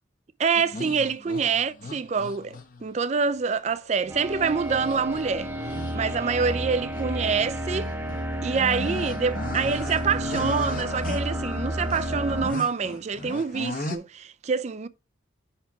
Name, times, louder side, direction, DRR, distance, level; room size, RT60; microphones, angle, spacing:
voice 1, 0.4-5.5 5.9-7.9 8.4-14.9, right 5 dB, 35° right, 0.4 m, -26 dB
sound 1, 0.6-3.0 3.7-6.6 6.9-7.0 7.7-14.0, left 2 dB, 45° left, 0.9 m, -38 dB
sound 2, 4.1-12.5, right 1 dB, 10° right, 0.9 m, -31 dB
5.7 x 4.4 x 5.8 m
head